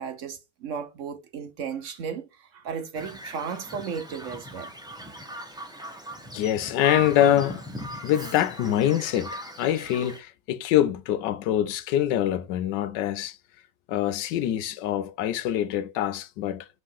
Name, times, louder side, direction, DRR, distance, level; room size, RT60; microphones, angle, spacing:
voice 1, 0.0-4.7, right 6 dB, 60° right, 0.8 m, -35 dB
Bird vocalization bird call bird song, 2.9-10.2, equal, 5° right, 0.9 m, -39 dB
voice 2, 6.3-7.6 8.0-13.4 13.9-16.7, left 11 dB, 85° left, 1.3 m, -25 dB
5.4 x 3.7 x 4.7 m
omnidirectional pair, 1.9 m